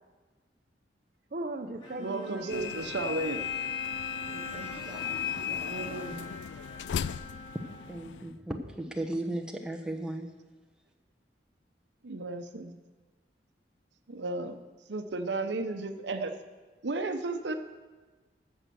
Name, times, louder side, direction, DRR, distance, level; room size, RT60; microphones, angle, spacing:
voice 1, 1.3-2.9 4.3-5.9 7.3-7.4, right 2 dB, 50° right, 7 dB, 0.7 m, -40 dB
Bowed string instrument, 1.8-8.2, left 1 dB, 30° left, 3.1 m, -44 dB
voice 2, 2.0-3.4 5.6-6.3 12.0-12.8 14.1-14.6 14.9-16.3 16.8-17.5, right 2 dB, 80° right, 8 dB, 0.8 m, -34 dB
sound 1, 2.5-8.3, left 9 dB, 80° left, 0.3 m, -36 dB
voice 3, 7.6-10.3, right 1 dB, 5° right, 1 dB, 0.9 m, -36 dB
14.0 x 6.5 x 6.9 m, 1.3 s
head